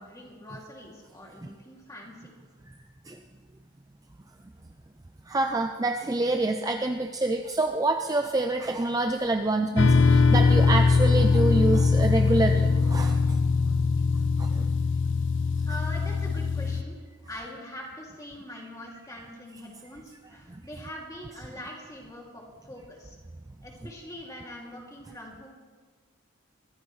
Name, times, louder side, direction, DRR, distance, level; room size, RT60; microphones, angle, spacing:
voice 1, 0.0-2.3 15.7-17.0 17.3-23.2 23.6-25.5, equal, 15° left, -2 dB, 2.6 m, -43 dB
voice 2, 5.3-13.4 14.4-14.7 20.5-20.6, right 2 dB, 15° right, 5 dB, 0.4 m, -27 dB
sound 1, 9.8-16.8, left 4 dB, 60° left, 0.6 m, -22 dB
22.5 x 15.5 x 3.2 m, 1.5 s
head